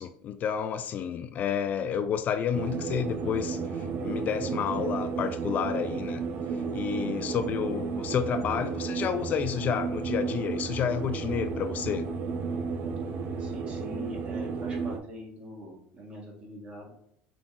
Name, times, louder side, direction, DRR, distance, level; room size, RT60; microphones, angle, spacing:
voice 1, 0.0-6.2 6.7-12.0, left 8 dB, 40° left, 10 dB, 0.3 m, -30 dB
sound 1, 2.5-15.0, right 5 dB, 50° right, 0.6 m, -33 dB
voice 2, 13.4-16.9, equal, 30° right, -2 dB, 1.8 m, -43 dB
5.8 x 3.8 x 2.4 m, 0.72 s
cardioid pair, 125°, 4 cm